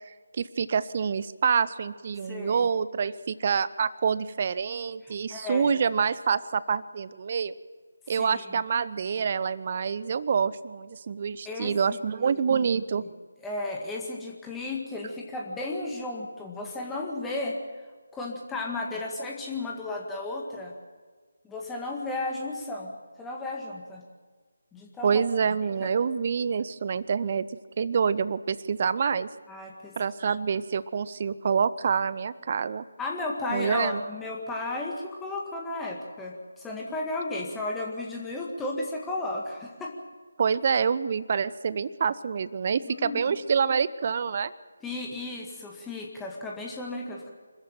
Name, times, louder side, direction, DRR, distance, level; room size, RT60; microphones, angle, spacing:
voice 1, 0.3-7.5 8.1-13.0 25.0-27.5 27.8-29.3 30.0-32.8 33.5-34.0 40.4-44.5, right 6 dB, 35° right, 17 dB, 0.7 m, -27 dB
voice 2, 2.3-2.7 5.0-5.8 8.2-8.5 11.5-12.4 13.4-17.6 18.1-20.7 21.4-22.9 23.2-24.0 24.7-25.2 25.8-25.9 29.5-29.9 33.0-39.9 42.8-43.4 44.8-47.3, left 2 dB, 5° left, -1 dB, 1.9 m, -34 dB
26.0 x 14.5 x 9.0 m, 1.5 s
figure-of-eight pair, 155°, 0 cm